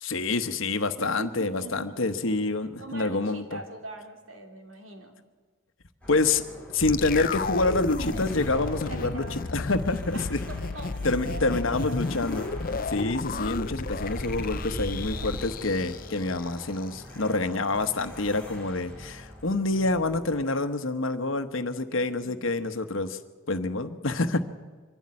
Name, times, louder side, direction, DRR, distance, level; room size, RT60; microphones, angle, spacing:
voice 1, 0.0-3.6 6.1-6.4 6.7-10.4 11.0-12.5 12.9-23.2 23.5-24.4, left 3 dB, 75° left, 9 dB, 1.1 m, -27 dB
voice 2, 0.9-2.4 2.8-5.1 8.9-9.5 10.1-12.0 12.4-12.9 21.9-22.8, right 2 dB, 85° right, 4 dB, 2.8 m, -43 dB
sound 1, 6.0-20.4, left 1 dB, 5° left, 4.0 m, -46 dB
sound 2, 6.8-16.9 17.2-17.3, left 4 dB, 45° left, 0.6 m, -34 dB
sound 3, 6.8-15.4, equal, 55° right, 3.6 m, -38 dB
24.5 x 12.0 x 9.7 m, 1.4 s
head